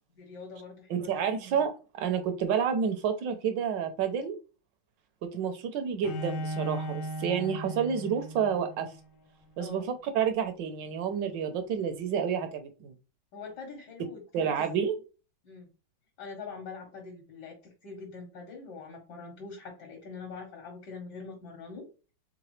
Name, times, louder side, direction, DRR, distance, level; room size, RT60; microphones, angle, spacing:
voice 1, 0.1-1.1 9.6-9.9 13.3-14.5 15.4-15.7 16.2-21.9, left 4 dB, 65° left, -1 dB, 1.6 m, -44 dB
voice 2, 0.9-4.4 5.2-8.9 9.6-9.8 10.1-12.9 14.3-15.0, right 7 dB, 75° right, 8 dB, 1.2 m, -29 dB
Bowed string instrument, 6.0-9.0, right 1 dB, 85° left, 0.7 m, -37 dB
3.8 x 3.5 x 3.1 m, 0.34 s
omnidirectional pair, 2.2 m